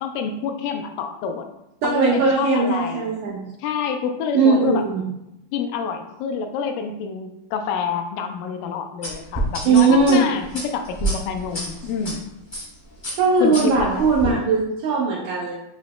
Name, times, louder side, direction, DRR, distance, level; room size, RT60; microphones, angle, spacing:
voice 1, 0.0-1.5 1.8-3.1 3.6-4.8 5.5-12.2 13.4-14.5, left 6 dB, 80° left, 6 dB, 2.0 m, -28 dB
voice 2, 1.8-3.4 4.3-5.1 9.7-10.2 13.2-15.5, right 4 dB, 80° right, -3 dB, 1.7 m, -19 dB
sound 1, 9.0-12.1 12.5-12.7 13.0-14.3, right 1 dB, 40° left, 0.6 m, -28 dB
8.2 x 2.8 x 2.2 m, 0.86 s
omnidirectional pair, 4.1 m